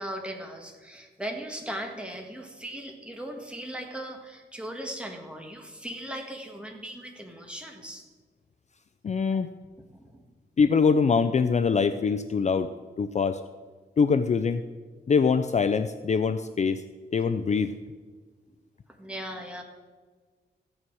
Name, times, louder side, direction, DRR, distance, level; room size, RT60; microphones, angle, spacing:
voice 1, 0.0-8.0 9.3-9.4 9.9-10.2 19.0-19.6, right 1 dB, 5° right, 2 dB, 1.7 m, -38 dB
voice 2, 9.0-9.5 10.6-12.7 13.0-13.4 14.0-14.6 15.1-16.8 17.1-17.7, left 5 dB, 40° left, 11 dB, 0.5 m, -23 dB
14.5 x 9.4 x 4.7 m, 1.5 s
wide cardioid pair, 120°, 18 cm